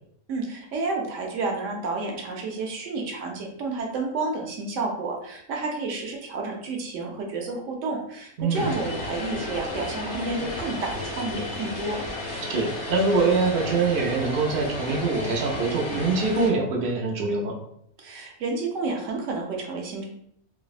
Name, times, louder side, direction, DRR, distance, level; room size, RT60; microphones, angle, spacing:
voice 1, 0.3-12.0 18.0-20.0, right 3 dB, 65° right, 1 dB, 0.9 m, -30 dB
voice 2, 8.4-8.7 12.4-17.5, right 3 dB, 85° right, 0 dB, 0.4 m, -24 dB
Vehicle, 8.5-16.5, left 2 dB, 60° left, 0.9 m, -33 dB
3.3 x 2.0 x 2.3 m, 0.70 s
omnidirectional pair, 1.5 m